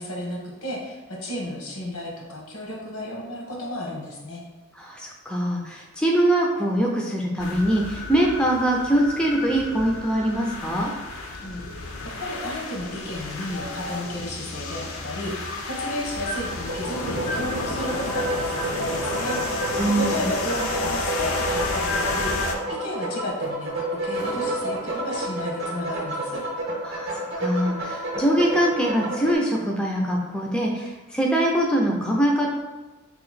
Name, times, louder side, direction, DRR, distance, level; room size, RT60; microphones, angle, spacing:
voice 1, 0.0-4.4 11.4-19.5 19.9-26.5, left 1 dB, 90° left, -2 dB, 1.0 m, -33 dB
voice 2, 4.8-10.9 19.8-20.3 26.8-32.5, right 1 dB, 5° left, -1 dB, 0.3 m, -23 dB
sound 1, 7.4-22.6, left 2 dB, 70° left, 0.5 m, -31 dB
sound 2, 16.5-29.3, right 1 dB, 50° right, 0.7 m, -30 dB
sound 3, 24.2-27.5, right 2 dB, 85° right, 0.7 m, -42 dB
2.9 x 2.5 x 4.0 m, 1.2 s
head